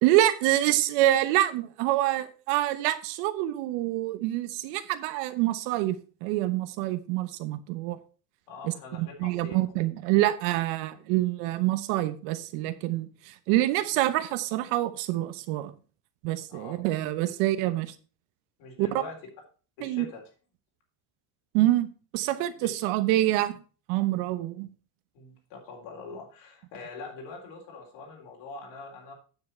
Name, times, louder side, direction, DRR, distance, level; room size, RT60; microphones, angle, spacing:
voice 1, 0.0-8.0 8.6-8.7 9.0-15.7 16.2-17.9 18.8-18.9 19.8-20.0 21.5-23.6 23.9-24.7, right 15 dB, 85° right, 1.2 m, -26 dB
voice 2, 8.5-9.6 16.5-16.7 18.6-19.2 19.8-20.2 22.6-22.7 25.1-29.1, left 4 dB, 65° left, 3.9 m, -43 dB
9.4 x 7.2 x 4.4 m
cardioid pair, 175°, 47 cm